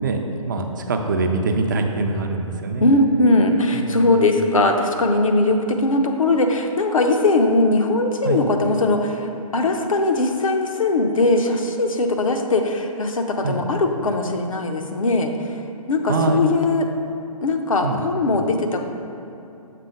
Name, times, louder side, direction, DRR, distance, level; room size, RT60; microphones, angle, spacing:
voice 1, 0.0-2.9 3.7-4.2 8.2-8.4 13.4-13.6 16.1-16.4 17.8-18.0, right 3 dB, 35° right, 4 dB, 0.4 m, -24 dB
voice 2, 2.8-15.3 15.9-16.9 17.4-18.8, left 2 dB, 65° left, 4 dB, 0.6 m, -20 dB
6.7 x 3.7 x 4.9 m, 2.9 s
figure-of-eight pair, 135°, 19 cm